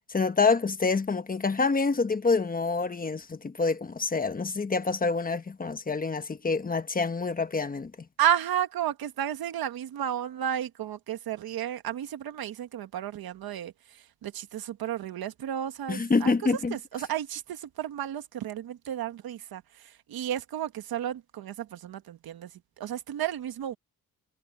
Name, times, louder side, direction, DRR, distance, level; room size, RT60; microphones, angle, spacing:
voice 1, 0.0-8.1 15.9-16.8, left 4 dB, 25° left, 1.1 m, -27 dB
voice 2, 8.2-16.3 16.7-23.8, right 10 dB, 85° right, 1.6 m, -32 dB
wide cardioid pair, 140°, 35 cm